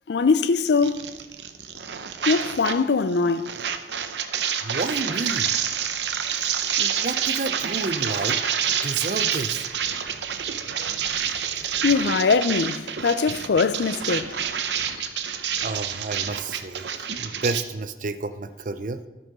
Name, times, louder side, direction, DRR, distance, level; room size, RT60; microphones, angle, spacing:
voice 1, 0.1-1.1 2.3-3.5 11.8-14.3, left 4 dB, 75° left, 0.5 m, -22 dB
sound 1, 0.8-2.8 3.1-17.6, right 8 dB, 80° right, 0.7 m, -28 dB
voice 2, 4.6-5.5 6.8-9.7 15.6-16.9 17.2-19.0, right 3 dB, 50° right, 0.6 m, -30 dB
13.0 x 5.6 x 5.4 m
head